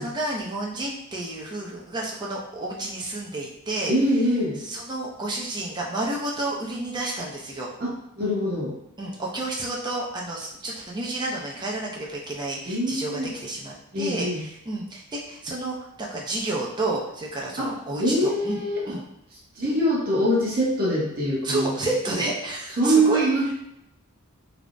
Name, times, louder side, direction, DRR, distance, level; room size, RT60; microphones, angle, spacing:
voice 1, 0.0-3.9 4.6-7.7 9.0-18.6 18.9-19.0 21.4-23.3, right 2 dB, 20° right, -3 dB, 0.5 m, -30 dB
voice 2, 3.9-4.6 7.8-8.7 12.7-13.3 13.9-14.4 17.6-17.7 18.0-19.0 19.6-21.9 22.8-23.5, right 1 dB, 40° right, -4 dB, 0.8 m, -23 dB
3.3 x 2.0 x 2.5 m, 0.82 s
head